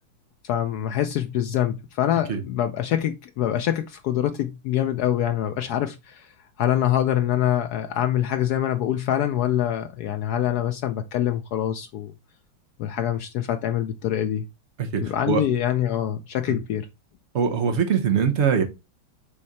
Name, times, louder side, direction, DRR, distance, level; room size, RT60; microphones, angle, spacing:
voice 1, 0.4-6.3 6.6-12.1 12.8-14.4 15.0-16.9, left 11 dB, 90° left, 0.8 m, -25 dB
voice 2, 14.8-15.4 17.3-18.6, right 6 dB, 45° right, 1.0 m, -22 dB
7.4 x 3.2 x 4.1 m
omnidirectional pair, 2.2 m